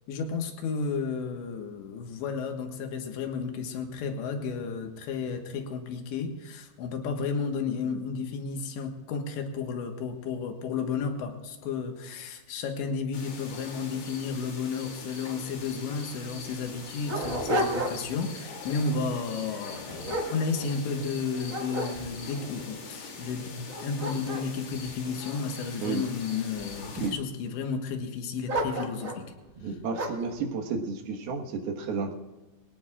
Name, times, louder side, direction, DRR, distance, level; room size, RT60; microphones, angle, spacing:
voice 1, 0.1-29.3, left 5 dB, 85° left, 4 dB, 3.7 m, -32 dB
sound 1, 13.1-27.1, left 3 dB, 60° left, 4.2 m, -43 dB
Dog, 15.9-16.0 16.6-18.2 18.7-19.0 19.6-21.1 21.5-22.4 23.0-23.1 23.6-25.9 26.5-27.2 28.5-29.3 29.9-30.3, right 1 dB, 90° right, 0.7 m, -33 dB
voice 2, 29.6-32.1, right 4 dB, 65° right, 3 dB, 3.1 m, -32 dB
23.0 x 17.5 x 2.4 m, 1.1 s
omnidirectional pair, 5.0 m